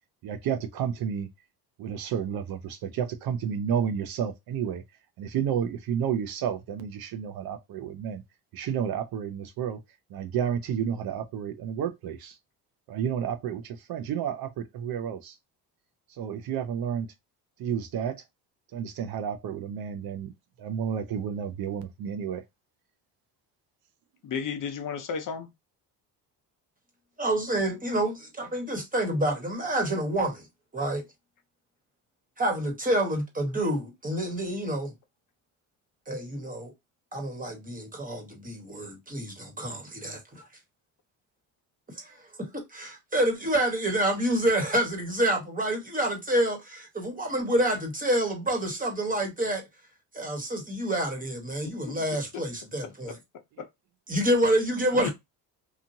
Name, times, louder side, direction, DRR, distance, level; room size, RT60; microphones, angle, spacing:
voice 1, 0.2-1.3 1.8-4.8 5.2-8.2 8.5-9.8 10.1-12.4 12.9-15.4 16.1-17.1 17.6-18.2 18.7-20.3 20.6-22.4, right 8 dB, 60° right, 0.6 m, -31 dB
voice 2, 24.2-25.5 51.9-52.0 52.8-53.2 53.6-53.7 54.9-55.1, left 6 dB, 50° left, 0.8 m, -34 dB
voice 3, 27.2-30.4 30.7-31.0 32.4-34.9 36.1-36.7 37.1-40.4 42.0-42.1 42.7-49.6 50.1-53.2 54.1-55.1, right 1 dB, 20° right, 1.3 m, -28 dB
2.9 x 2.4 x 2.6 m
cardioid pair, 100°, 40 cm